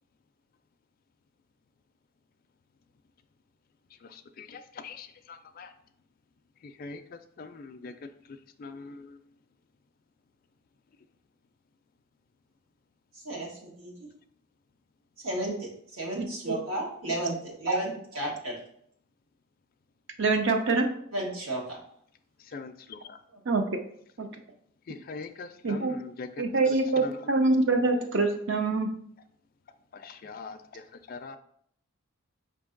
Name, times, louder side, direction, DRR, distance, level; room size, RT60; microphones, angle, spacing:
voice 1, 4.4-5.7 6.8-7.0 7.4-7.9 8.6-9.1 22.5-23.0 24.9-26.3 27.0-27.1 29.9-30.8 31.1-31.4, left 4 dB, 45° left, 0.3 m, -42 dB
voice 2, 13.2-13.9 15.2-18.6 21.1-21.8, right 1 dB, 75° right, 1.5 m, -33 dB
voice 3, 16.2-16.5 17.7-17.8 20.2-20.9 23.5-23.6 24.2-24.3 25.6-25.9 26.4-28.9, right 3 dB, 55° right, 0.5 m, -25 dB
5.2 x 2.7 x 3.8 m
head